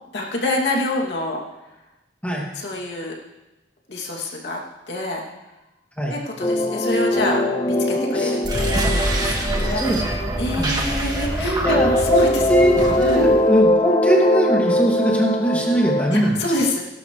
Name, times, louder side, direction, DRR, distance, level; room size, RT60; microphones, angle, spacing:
voice 1, 0.1-1.4 2.5-3.1 3.9-4.6 4.9-5.2 6.1-9.8 10.4-12.4 13.0-13.3 16.1-16.8, left 2 dB, 70° left, -2 dB, 2.7 m, -27 dB
sound 1, 6.4-11.3 11.6-16.2, left 1 dB, 25° left, 0.7 m, -21 dB
voice 2, 8.0-8.4 9.5-10.2 10.6-10.7 11.4-16.4, right 1 dB, 10° left, -2 dB, 2.5 m, -21 dB
sound 2, 8.4-13.4, right 1 dB, 25° right, 1.9 m, -25 dB
18.0 x 12.0 x 3.3 m, 1.0 s
head